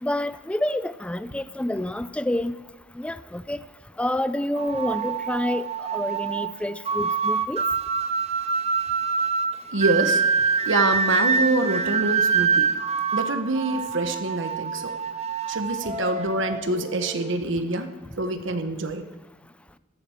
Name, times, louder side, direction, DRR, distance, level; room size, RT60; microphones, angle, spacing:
voice 1, 0.0-2.6 2.9-3.6 4.0-7.6, left 1 dB, 5° left, 14 dB, 0.4 m, -28 dB
sound 1, 4.6-17.4, right 5 dB, 35° right, 0.7 m, -26 dB
voice 2, 9.7-10.2 10.6-12.7 13.1-14.9 15.5-17.9 18.2-19.1, right 2 dB, 70° right, 8 dB, 1.1 m, -25 dB
15.0 x 12.0 x 4.3 m, 1.2 s
head